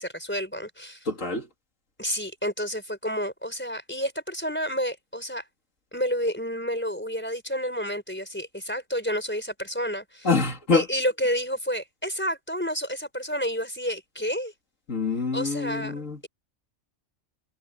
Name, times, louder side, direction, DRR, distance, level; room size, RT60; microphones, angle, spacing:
voice 1, 0.0-1.1 2.0-5.5 5.9-10.3 10.7-14.5 15.3-16.3, equal, 10° left, 4.3 m, -30 dB
voice 2, 1.1-1.5 10.2-10.9 14.9-16.2, left 4 dB, 80° left, 2.8 m, -25 dB
omnidirectional pair, 1.3 m